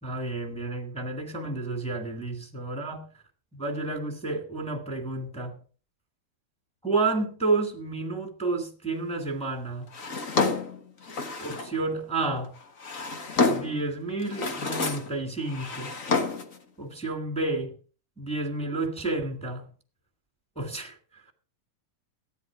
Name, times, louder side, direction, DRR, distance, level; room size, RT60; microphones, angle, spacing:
voice 1, 0.0-3.1 3.6-5.6 6.8-9.9 11.4-12.5 13.3-15.9 16.8-17.8 18.2-19.7 20.6-21.0, right 3 dB, ahead, 2.1 m, -30 dB
Drawer open or close, 9.9-11.8 12.6-13.8 14.2-15.1 15.4-16.6, left 3 dB, 50° left, 1.0 m, -28 dB
14.5 x 10.5 x 5.0 m
omnidirectional pair, 3.5 m